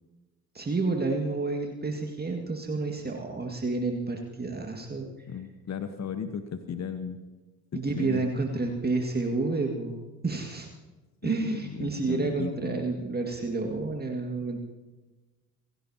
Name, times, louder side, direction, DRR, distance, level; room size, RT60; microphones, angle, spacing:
voice 1, 0.5-5.1 7.7-10.7 11.2-14.6, right 3 dB, 20° right, 2 dB, 2.1 m, -30 dB
voice 2, 5.3-7.2 7.7-8.3 11.2-12.9, left 7 dB, 35° left, 9 dB, 1.3 m, -36 dB
28.0 x 16.0 x 2.9 m, 1.2 s
figure-of-eight pair, 45°, 45 cm